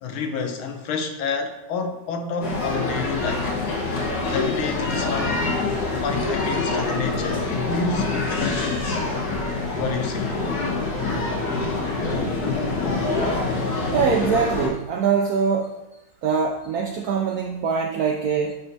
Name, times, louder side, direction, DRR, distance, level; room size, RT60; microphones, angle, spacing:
voice 1, 0.0-3.5 4.3-5.4 5.9-9.1 9.8-10.3, left 4 dB, 80° left, 6 dB, 1.7 m, -29 dB
sound 1, 2.4-14.7, left 3 dB, 55° left, 1.6 m, -25 dB
voice 2, 13.9-15.7 16.2-18.5, right 6 dB, 75° right, 3 dB, 0.8 m, -23 dB
10.0 x 4.1 x 4.0 m, 0.96 s
omnidirectional pair, 2.3 m